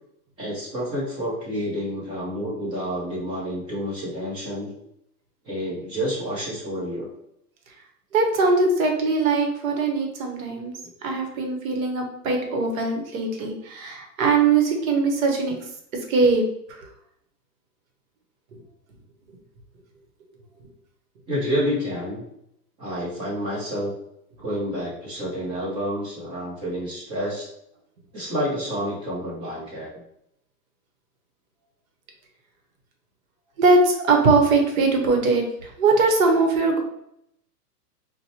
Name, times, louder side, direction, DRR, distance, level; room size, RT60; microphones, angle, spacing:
voice 1, 0.4-4.7 5.4-7.1 21.3-22.2 22.8-23.9 24.4-27.5 28.1-29.9, equal, 10° right, -6 dB, 0.6 m, -29 dB
voice 2, 8.1-10.7 11.0-15.5 16.1-16.4 16.8-16.9 33.6-35.4 35.8-36.8, right 3 dB, 60° right, 2 dB, 0.9 m, -21 dB
2.8 x 2.2 x 4.1 m, 0.76 s
hypercardioid pair, 155°, 47 cm